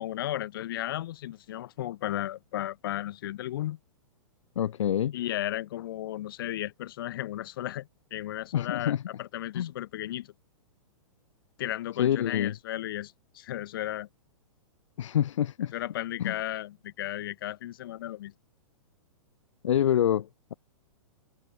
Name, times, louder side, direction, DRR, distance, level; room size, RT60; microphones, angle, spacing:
voice 1, 0.0-3.8 5.1-10.3 11.6-14.1 15.7-18.3, left 13 dB, 40° left, 2.9 m, -34 dB
voice 2, 4.6-5.2 8.5-9.0 9.5-9.7 12.0-12.6 15.0-15.7 16.2-16.3 19.6-20.5, left 10 dB, 60° left, 1.0 m, -26 dB
hypercardioid pair, 180°, 18 cm